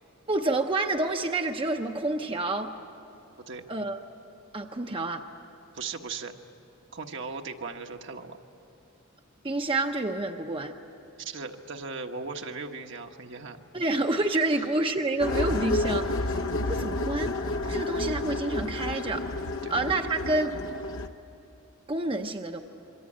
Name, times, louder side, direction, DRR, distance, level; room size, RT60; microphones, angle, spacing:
voice 1, 0.3-2.7 3.7-4.0 4.5-5.2 9.4-10.7 13.7-19.2 19.7-20.5 21.9-22.6, right 2 dB, 25° right, 4 dB, 0.8 m, -28 dB
voice 2, 5.7-6.4 6.9-8.4 11.2-13.6 14.5-14.6 19.6-19.8, right 4 dB, 60° right, 4 dB, 1.3 m, -38 dB
sound 1, 15.2-21.1, left 2 dB, 70° left, 1.0 m, -30 dB
26.5 x 23.5 x 8.8 m, 2.9 s
head